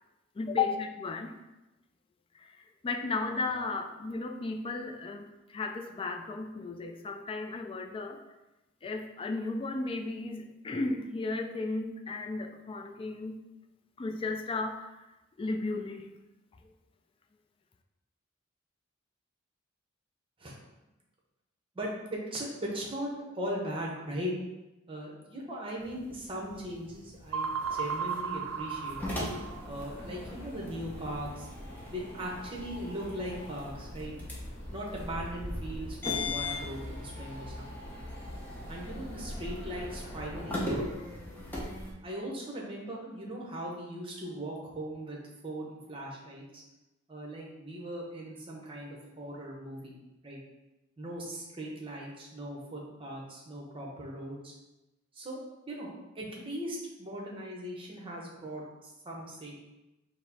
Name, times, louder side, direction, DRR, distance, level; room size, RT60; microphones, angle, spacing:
voice 1, 0.4-1.4 2.4-2.6 2.8-8.2 8.8-13.4 14.0-15.0 15.4-16.1, left 3 dB, 25° left, 4 dB, 0.3 m, -34 dB
voice 2, 21.7-24.3 24.9-29.0 29.6-31.5 31.9-34.1 34.7-37.9 38.7-40.8 42.0-45.2 45.4-46.6 47.1-49.9 50.2-50.4 51.0-54.5 55.1-55.4 55.7-55.9 56.1-59.6, right 1 dB, 25° right, -3 dB, 0.8 m, -39 dB
sound 1, 25.8-41.9, left 2 dB, 10° left, 0.7 m, -40 dB
sound 2, 27.3-29.9, right 5 dB, 80° right, 0.3 m, -35 dB
sound 3, 28.9-40.9, left 1 dB, 50° left, 1.0 m, -45 dB
4.7 x 2.1 x 4.1 m, 0.99 s
head